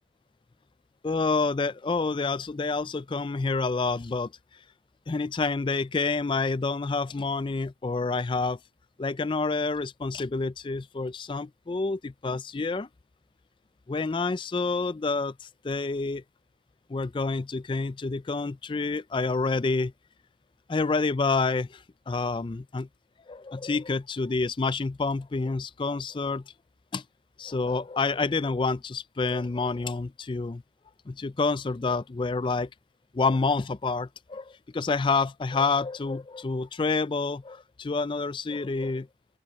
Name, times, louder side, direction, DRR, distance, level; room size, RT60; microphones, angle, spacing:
voice 1, 1.0-4.3 5.1-8.6 9.0-12.9 13.9-16.2 16.9-19.9 20.7-22.9 23.3-26.4 26.9-27.0 27.4-30.6 31.1-32.7 33.1-39.1, left 3 dB, 30° left, 0.4 m, -28 dB
open air
head